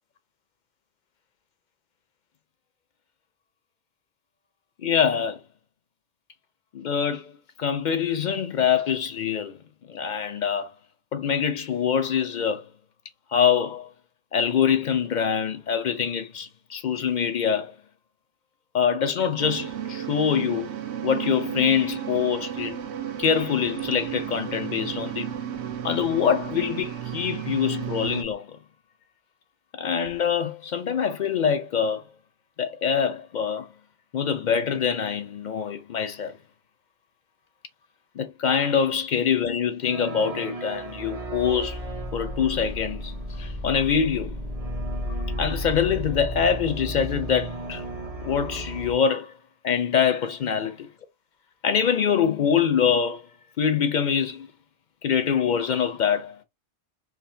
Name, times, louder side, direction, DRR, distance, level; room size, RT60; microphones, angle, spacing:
voice 1, 4.8-5.4 6.7-7.3 7.6-9.6 9.9-10.7 11.1-12.6 13.3-13.9 14.3-17.7 18.7-20.7 21.0-22.7 23.2-25.3 25.8-28.5 29.7-32.0 32.6-33.7 34.1-36.3 38.2-41.8 42.1-44.4 45.4-47.8 48.2-49.3 49.6-50.9 51.6-53.2 53.6-54.5 55.0-56.4, left 7 dB, 55° left, 0.6 m, -24 dB
sound 1, 19.4-28.2, right 10 dB, 80° right, 0.9 m, -33 dB
sound 2, 39.8-49.0, equal, 35° right, 0.8 m, -33 dB
3.4 x 2.5 x 2.7 m
omnidirectional pair, 1.1 m